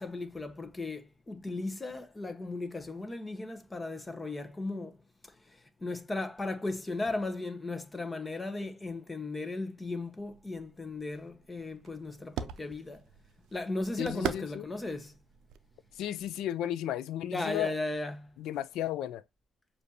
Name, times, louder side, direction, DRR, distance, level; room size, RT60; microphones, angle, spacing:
voice 1, 0.0-5.0 5.5-13.0 13.5-15.1 17.3-18.3, left 2 dB, 20° left, 0.9 m, -36 dB
sound 1, 10.2-16.5, right 8 dB, 85° right, 0.4 m, -43 dB
voice 2, 14.0-14.7 16.0-17.7 18.4-19.2, left 12 dB, 85° left, 0.4 m, -34 dB
6.7 x 2.6 x 2.8 m
cardioid pair, 90°, 0 cm